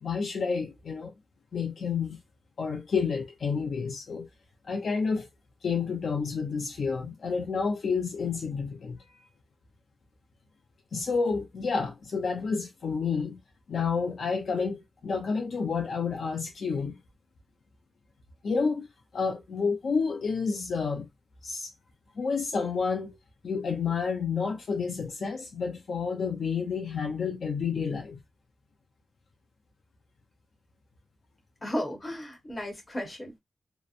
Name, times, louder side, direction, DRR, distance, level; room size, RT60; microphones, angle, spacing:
voice 1, 0.0-1.1 1.5-2.2 2.6-4.3 4.7-5.3 5.6-9.0 10.9-13.4 13.7-17.0 18.4-18.9 19.1-21.1 21.4-21.7 22.2-23.2 23.4-28.2, left 5 dB, 60° left, 0.5 m, -30 dB
voice 2, 31.6-33.4, equal, 20° left, 1.0 m, -34 dB
2.9 x 2.0 x 2.4 m
wide cardioid pair, 165°, 0 cm